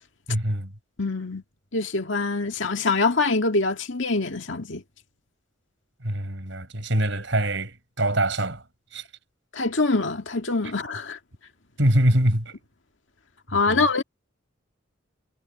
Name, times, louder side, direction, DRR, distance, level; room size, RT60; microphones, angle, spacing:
voice 1, 0.3-0.7 6.0-8.6 8.9-9.0 11.8-12.6 13.7-13.8, right 1 dB, 65° right, 6.7 m, -24 dB
voice 2, 1.0-1.4 1.7-4.8 9.5-11.2 13.5-14.0, left 3 dB, 70° left, 2.0 m, -24 dB
head